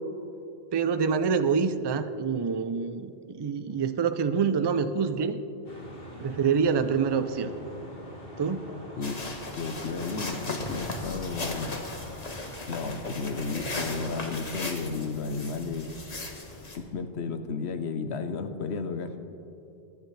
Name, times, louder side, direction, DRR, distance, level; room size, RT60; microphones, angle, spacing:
voice 1, 0.7-5.4 6.2-7.5 8.4-8.7, right 6 dB, 40° right, 10 dB, 0.4 m, -26 dB
sound 1, 5.6-14.2, left 1 dB, 60° left, 2.3 m, -44 dB
sound 2, 9.0-16.8, left 2 dB, 40° left, 1.3 m, -37 dB
voice 2, 9.6-11.9 12.7-15.9 16.8-19.1, left 4 dB, 80° left, 7 dB, 1.1 m, -33 dB
23.0 x 10.5 x 3.3 m, 2.9 s
omnidirectional pair, 1.1 m